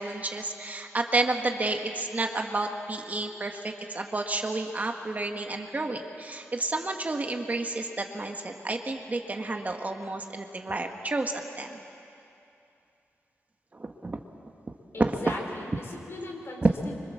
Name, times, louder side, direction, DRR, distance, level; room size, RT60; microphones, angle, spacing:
voice 1, 0.0-11.8 13.7-14.2 14.7-15.2 16.6-16.7, right 2 dB, 35° right, 3 dB, 1.6 m, -30 dB
voice 2, 14.9-17.0, left 2 dB, 60° left, 1 dB, 4.3 m, -39 dB
27.0 x 24.5 x 7.4 m, 2.7 s
wide cardioid pair, 125°, 5 cm